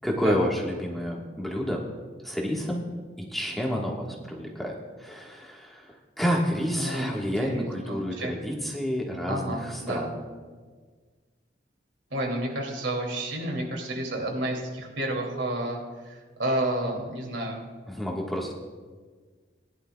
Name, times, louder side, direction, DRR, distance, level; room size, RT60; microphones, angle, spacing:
voice 1, 0.0-1.8 2.2-2.9 3.2-10.2 17.9-18.5, equal, ahead, -2 dB, 1.4 m, -29 dB
voice 2, 6.8-8.3 9.2-10.0 12.1-17.7, right 1 dB, 90° right, 0 dB, 2.6 m, -31 dB
20.0 x 11.0 x 2.3 m, 1.5 s
head